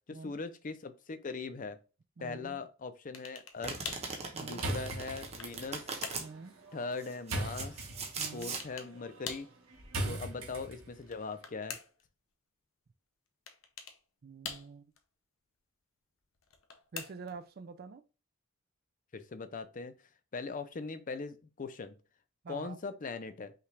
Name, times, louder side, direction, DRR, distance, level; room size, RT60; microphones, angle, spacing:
voice 1, 0.1-1.8 2.2-3.8 4.4-5.9 6.7-7.8 8.3-9.5 10.0-11.8 19.1-19.9 20.3-21.9 22.5-23.5, left 4 dB, 40° left, 0.5 m, -40 dB
voice 2, 2.2-2.6 4.3-4.6 6.2-6.6 8.2-8.5 9.9-10.2 14.2-14.9 16.9-18.0 22.4-22.8, right 4 dB, 50° right, 0.4 m, -47 dB
sound 1, 3.1-3.6 3.8-4.1 4.8-5.6 6.0-6.3 8.4-8.9 9.2-9.5 11.0-12.1 13.5-14.0 14.4-15.0 16.4-17.4, left 6 dB, 80° left, 0.7 m, -44 dB
Domestic sounds home sounds, 3.6-6.3 7.0-8.6, right 4 dB, 30° right, 0.9 m, -40 dB
sound 2, 4.6-11.1, right 1 dB, 90° right, 1.4 m, -40 dB
5.7 x 2.4 x 3.2 m
head